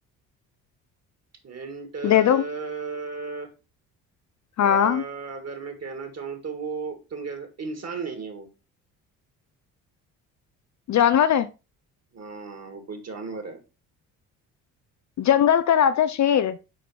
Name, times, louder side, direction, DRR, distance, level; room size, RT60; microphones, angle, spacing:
voice 1, 1.4-3.5 4.6-8.5 12.1-13.6, right 4 dB, 35° right, 2.4 m, -35 dB
voice 2, 2.0-2.4 4.6-5.0 10.9-11.5 15.2-16.6, left 9 dB, 40° left, 0.6 m, -19 dB
6.4 x 5.1 x 4.4 m
hypercardioid pair, 50°, 45 cm